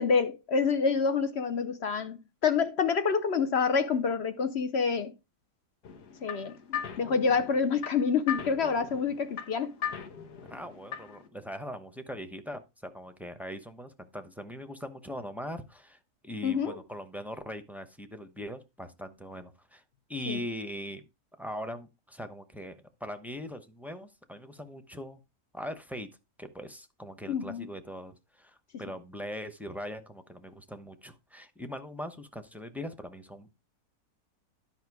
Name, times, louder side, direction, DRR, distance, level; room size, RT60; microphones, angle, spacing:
voice 1, 0.0-5.1 6.2-9.7 16.4-16.8 20.3-20.4 27.3-27.7, left 5 dB, 55° left, 0.8 m, -27 dB
sound 1, 5.8-11.3, left 8 dB, 90° left, 1.8 m, -39 dB
voice 2, 10.5-16.0 16.2-19.8 20.1-21.0 21.4-25.2 25.5-26.1 26.4-33.6, equal, ahead, 0.6 m, -41 dB
11.0 x 5.8 x 4.7 m
omnidirectional pair, 1.6 m